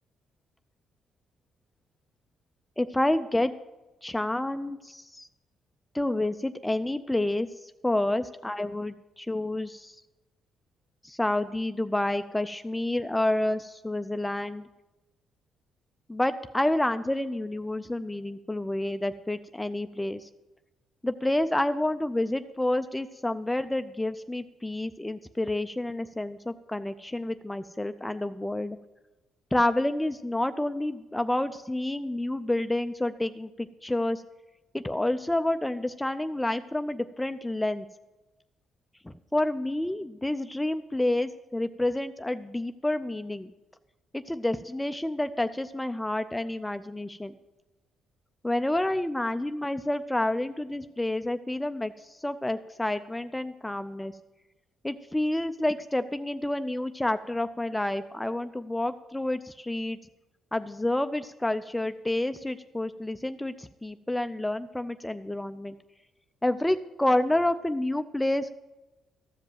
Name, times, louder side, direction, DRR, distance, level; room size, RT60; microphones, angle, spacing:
voice 1, 2.8-3.5 4.0-5.3 5.9-10.0 11.0-14.6 16.1-20.3 21.0-28.8 29.5-34.2 34.7-37.9 39.0-43.5 44.1-47.3 48.4-54.1 54.8-60.0 60.5-65.8 66.4-68.5, left 1 dB, 10° left, 10 dB, 0.4 m, -29 dB
14.0 x 5.3 x 7.7 m, 1.1 s
cardioid pair, 90°, 0 cm